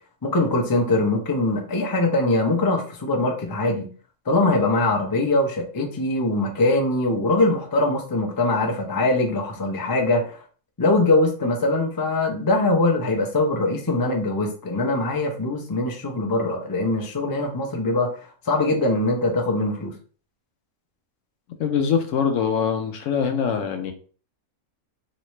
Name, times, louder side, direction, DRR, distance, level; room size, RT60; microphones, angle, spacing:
voice 1, 0.2-3.9 4.3-10.4 10.8-18.1 18.5-19.9, left 2 dB, 30° left, 1 dB, 0.4 m, -22 dB
voice 2, 21.6-23.9, left 7 dB, 70° left, 6 dB, 0.8 m, -23 dB
3.2 x 2.9 x 3.1 m, 0.40 s
omnidirectional pair, 1.5 m